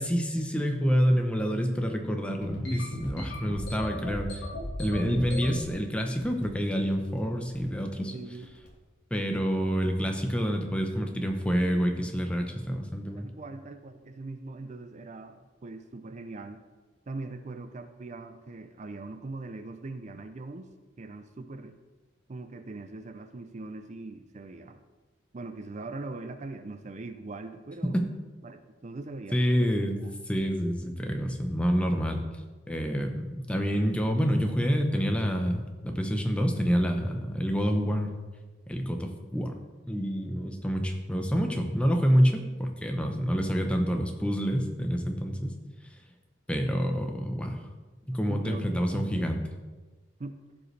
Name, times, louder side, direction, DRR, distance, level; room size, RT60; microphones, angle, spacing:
voice 1, 0.0-4.4 4.8-8.1 9.1-13.3 27.9-28.0 29.3-30.0 30.3-32.2 32.7-38.1 38.7-39.5 39.9-45.5 46.5-47.6 48.1-49.4, equal, 5° left, 3 dB, 0.8 m, -27 dB
sound 1, 2.4-5.7 6.2-6.7 6.9-7.2 7.5-7.8 8.4-8.7, left 1 dB, 65° left, 1.7 m, -36 dB
voice 2, 8.1-8.5 13.2-16.6 17.1-20.7 21.0-21.8 22.3-24.8 25.3-28.0 28.4-30.1 48.3-49.3 50.2-50.4, right 3 dB, 40° right, 9 dB, 0.5 m, -41 dB
15.0 x 5.3 x 3.3 m, 1.3 s
head